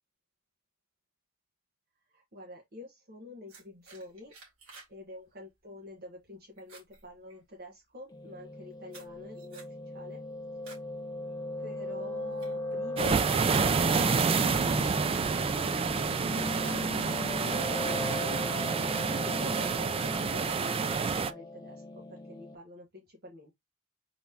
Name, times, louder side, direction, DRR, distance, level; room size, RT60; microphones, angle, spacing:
voice 1, 2.1-4.3 4.9-10.2 11.6-14.3 14.7-15.1 15.5-18.7 19.2-23.5, left 1 dB, 50° right, 1.3 m, -47 dB
sound 1, 3.5-5.0 5.3-5.6 6.0-6.3 6.6-7.8 8.4-10.9 11.3-11.6 12.1-13.8 14.5-14.6 14.8-15.3 15.7-16.1 16.5-17.5, right 4 dB, 75° right, 2.2 m, -54 dB
Piano, 8.1-22.5, left 1 dB, 20° left, 0.8 m, -38 dB
sound 2, 13.0-21.3, right 5 dB, 25° right, 0.3 m, -28 dB
4.1 x 3.0 x 3.4 m
head